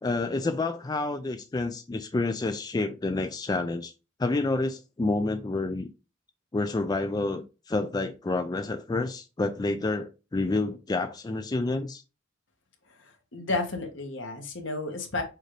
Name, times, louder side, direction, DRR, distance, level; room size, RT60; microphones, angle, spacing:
voice 1, 0.0-3.9 4.2-5.9 6.5-12.0, left 2 dB, 20° left, 0.3 m, -29 dB
voice 2, 13.0-15.2, left 3 dB, 65° left, 1.4 m, -32 dB
6.4 x 2.6 x 3.2 m
head